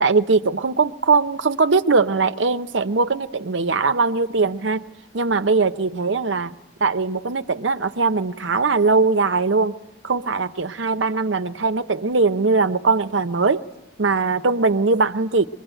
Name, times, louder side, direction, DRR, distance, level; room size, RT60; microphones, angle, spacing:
voice 1, 0.0-4.8 5.1-6.5 6.8-9.8 10.0-13.6 14.0-15.5, right 4 dB, 80° right, 0.8 m, -20 dB
24.0 x 22.0 x 9.1 m
head